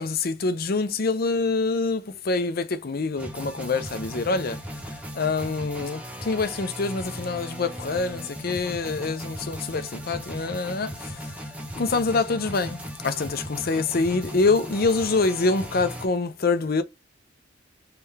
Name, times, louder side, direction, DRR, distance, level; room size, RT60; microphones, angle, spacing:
voice 1, 0.0-11.3 11.8-16.8, left 3 dB, 50° left, 0.6 m, -26 dB
sound 1, 3.2-16.1, equal, 5° right, 0.8 m, -37 dB
3.7 x 3.3 x 2.8 m
head